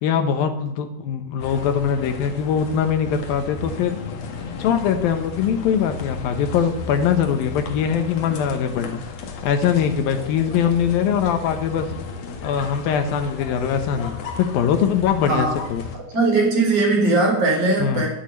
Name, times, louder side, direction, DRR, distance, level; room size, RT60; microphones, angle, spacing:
voice 1, 0.0-4.0 4.6-9.0 9.4-11.9 12.4-15.8 17.8-18.1, left 8 dB, 80° left, 7 dB, 2.1 m, -22 dB
sound 1, 1.4-16.0, left 4 dB, 55° left, 2.5 m, -34 dB
voice 2, 16.1-18.1, right 2 dB, 30° right, 0 dB, 5.1 m, -19 dB
11.5 x 11.5 x 9.9 m, 0.82 s
omnidirectional pair, 5.8 m